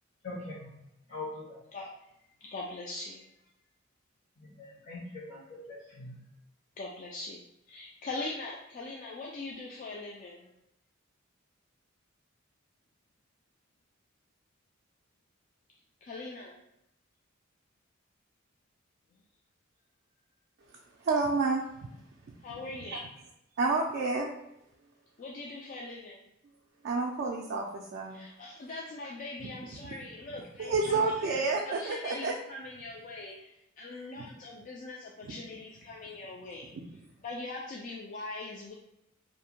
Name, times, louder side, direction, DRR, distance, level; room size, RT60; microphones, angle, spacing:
voice 1, 0.2-0.8 1.1-1.6 4.4-6.2, left 2 dB, 60° left, -8 dB, 0.9 m, -42 dB
voice 2, 1.7-2.1 2.4-3.3 6.8-10.5 16.0-16.6 22.4-23.0 25.2-26.2 28.1-36.7 37.2-38.7, left 2 dB, 40° left, -2 dB, 0.3 m, -42 dB
voice 3, 21.0-21.6 22.9-23.0 23.6-24.3 26.8-28.2 29.8-29.9 30.6-32.3, right 3 dB, 55° right, -1 dB, 0.3 m, -29 dB
2.6 x 2.1 x 2.9 m, 0.84 s
head